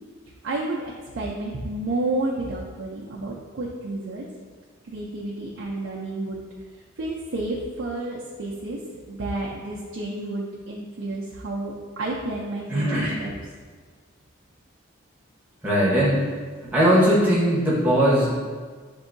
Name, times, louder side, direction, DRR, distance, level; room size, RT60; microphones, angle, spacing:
voice 1, 0.4-4.2 4.9-6.4 7.0-8.8 9.1-11.7 12.0-13.3, right 2 dB, 75° right, -5 dB, 0.5 m, -30 dB
voice 2, 12.7-13.2 15.6-16.2 16.6-18.3, equal, 10° right, -7 dB, 1.0 m, -19 dB
6.9 x 2.7 x 2.6 m, 1.5 s
head